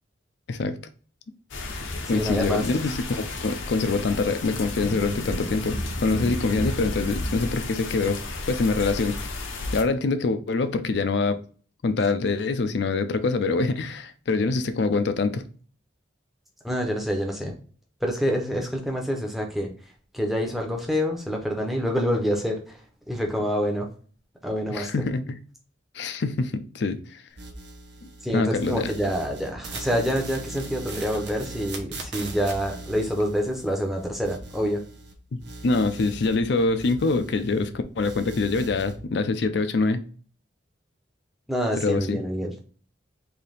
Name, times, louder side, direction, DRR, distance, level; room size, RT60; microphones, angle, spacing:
voice 1, 0.5-0.8 2.1-9.2 9.7-11.4 11.8-15.4 24.7-25.4 25.9-27.2 28.3-28.9 35.3-40.0 41.8-42.2, left 3 dB, 60° left, 0.4 m, -25 dB
sound 1, 1.5-9.8, left 2 dB, 75° left, 0.8 m, -32 dB
voice 2, 2.1-2.6 16.6-17.6 18.0-19.7 20.1-23.9 24.4-24.9 28.2-34.8 41.5-42.5, equal, ahead, 0.6 m, -27 dB
sound 2, 27.4-28.3 28.5-35.1 35.4-37.7 38.0-39.0, right 3 dB, 60° right, 0.8 m, -40 dB
3.4 x 2.7 x 4.0 m
head